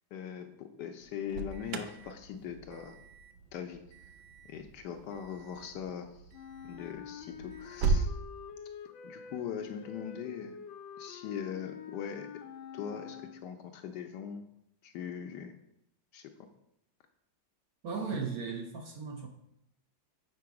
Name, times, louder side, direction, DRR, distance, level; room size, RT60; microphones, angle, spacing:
voice 1, 0.1-3.0 3.5-4.1 4.5-6.2 6.6-8.1 9.0-10.6 11.0-12.3 12.7-14.5 14.8-15.6 16.1-16.3, left 8 dB, 70° left, 6 dB, 1.1 m, -41 dB
Alarm, 1.0-8.1, right 4 dB, 85° right, 1.4 m, -37 dB
Wind instrument woodwind instrument, 6.3-13.7, left 7 dB, 90° left, 1.3 m, -47 dB
voice 2, 17.8-19.3, right 5 dB, 60° right, 2 dB, 1.0 m, -36 dB
6.8 x 4.7 x 4.7 m, 0.80 s
omnidirectional pair, 2.0 m